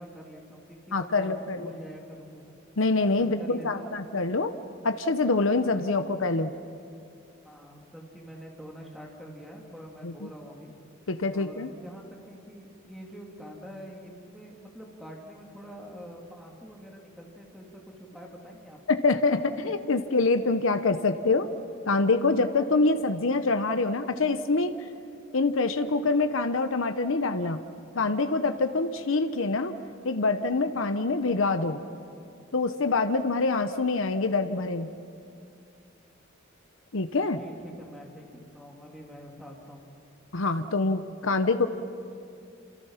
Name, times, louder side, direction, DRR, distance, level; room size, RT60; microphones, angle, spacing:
voice 1, 0.0-2.5 3.1-4.0 5.6-6.1 7.4-10.7 11.3-17.7 18.0-18.8 37.2-39.9, equal, ahead, -1 dB, 3.1 m, -45 dB
voice 2, 0.9-1.7 2.8-4.5 4.8-6.5 10.0-10.3 11.1-11.7 18.9-21.5 21.9-24.7 25.3-27.6 27.9-29.7 30.0-31.8 32.5-34.9 36.9-37.4 40.3-41.7, left 3 dB, 70° left, 9 dB, 0.9 m, -25 dB
28.0 x 27.5 x 5.8 m, 2.5 s
head